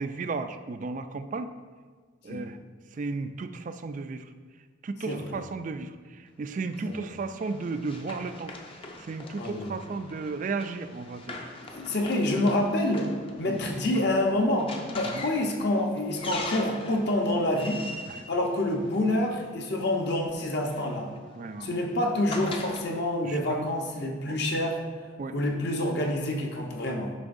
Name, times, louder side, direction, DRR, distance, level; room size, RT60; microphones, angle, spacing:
voice 1, 0.0-1.5 2.2-2.6 3.0-4.2 4.8-5.9 6.4-8.5 9.1-11.4 13.5-13.7 15.1-15.2 21.4-21.7 23.2-23.6 24.3-24.4 25.2-25.3, right 3 dB, 40° right, 10 dB, 0.3 m, -34 dB
voice 2, 5.0-5.4 6.8-7.0 9.4-9.8 11.7-13.1 13.4-17.8 18.3-21.1 21.6-24.8 25.3-27.1, left 1 dB, 55° left, 1 dB, 0.9 m, -27 dB
Run, 6.7-19.4 20.4-22.8, left 2 dB, 25° left, 0.6 m, -42 dB
9.5 x 6.0 x 2.6 m, 1.5 s
head